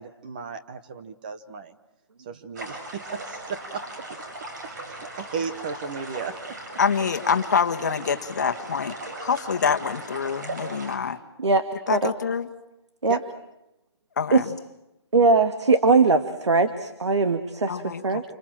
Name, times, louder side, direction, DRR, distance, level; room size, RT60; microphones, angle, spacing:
voice 1, 0.0-1.7 2.2-4.0 4.6-6.6 12.0-12.1 13.1-13.2, right 5 dB, 20° right, 10 dB, 0.9 m, -35 dB
sound 1, 2.6-11.0, right 2 dB, 40° right, 6.6 m, -38 dB
voice 2, 6.8-9.0 9.2-11.2 11.9-12.5 14.2-14.5 17.7-18.2, left 6 dB, 40° left, 8 dB, 1.6 m, -25 dB
voice 3, 15.1-18.2, right 3 dB, 90° right, 9 dB, 1.9 m, -20 dB
28.5 x 26.0 x 7.6 m, 0.90 s
hypercardioid pair, 175°, 14 cm